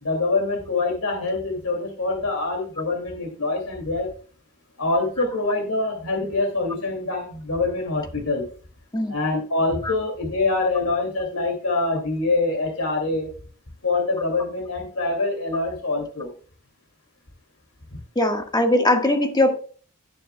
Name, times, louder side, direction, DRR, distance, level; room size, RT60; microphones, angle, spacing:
voice 1, 0.0-4.1 4.8-8.5 9.1-13.3 13.8-16.3, left 3 dB, 80° left, 2 dB, 2.5 m, -25 dB
voice 2, 18.1-19.6, left 1 dB, 20° left, 4 dB, 1.5 m, -20 dB
17.5 x 6.9 x 2.3 m, 0.41 s
head